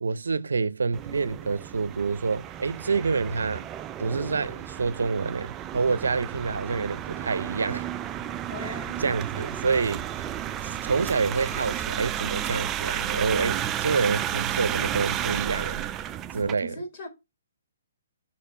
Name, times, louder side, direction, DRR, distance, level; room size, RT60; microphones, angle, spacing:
voice 1, 0.0-3.7 4.0-7.9 8.6-10.3 10.6-15.9 16.3-16.8, right 4 dB, 90° right, 0.5 m, -27 dB
sound 1, 0.9-16.5, right 11 dB, 15° right, 0.3 m, -32 dB
voice 2, 8.5-9.1 16.6-17.1, right 1 dB, 35° left, 3.5 m, -38 dB
5.9 x 4.3 x 5.6 m
hypercardioid pair, 155°, 0 cm